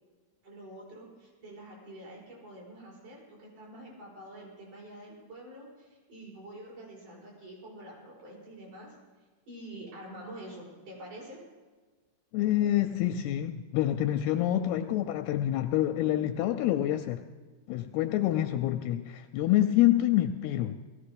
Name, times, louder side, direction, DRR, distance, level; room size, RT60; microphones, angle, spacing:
voice 1, 0.4-9.0 9.5-11.4, right 1 dB, 45° right, -4 dB, 6.5 m, -47 dB
voice 2, 12.3-17.2 17.7-20.8, left 13 dB, 80° left, 8 dB, 2.4 m, -27 dB
18.5 x 15.0 x 5.1 m, 1.4 s
omnidirectional pair, 4.9 m